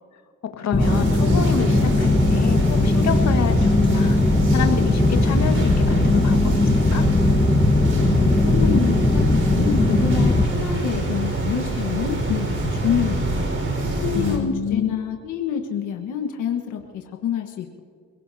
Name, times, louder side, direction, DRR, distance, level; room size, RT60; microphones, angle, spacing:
voice 1, 0.6-7.1 14.1-14.9, left 7 dB, 65° left, 5 dB, 1.7 m, -27 dB
amb int air installation ventilation system drone medium, 0.7-10.5, left 2 dB, 20° left, 1.3 m, -19 dB
sound 1, 0.8-14.4, right 2 dB, 50° right, 5.0 m, -25 dB
voice 2, 8.0-13.5 14.0-17.8, left 8 dB, 85° left, 3 dB, 1.5 m, -27 dB
29.0 x 17.5 x 2.8 m, 2.2 s
cardioid pair, 90°, 30 cm